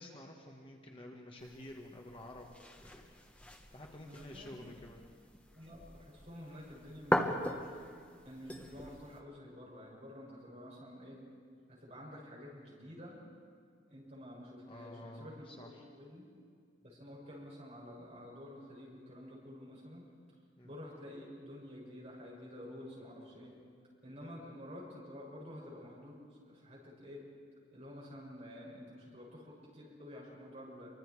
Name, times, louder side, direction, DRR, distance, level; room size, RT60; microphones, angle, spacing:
voice 1, 0.0-3.2 3.7-5.0 14.7-15.9 20.6-20.7 24.2-24.4, left 1 dB, 25° left, 1 dB, 1.6 m, -50 dB
sound 1, 1.4-9.2, equal, 5° left, 1.1 m, -40 dB
voice 2, 4.0-4.5 5.5-7.5 8.2-11.2 11.7-13.2 13.9-16.2 16.8-20.0 20.6-23.5 24.0-26.2 26.4-27.2 27.7-30.9, left 1 dB, 35° right, -4 dB, 7.3 m, -50 dB
28.0 x 24.0 x 4.9 m, 2.2 s
head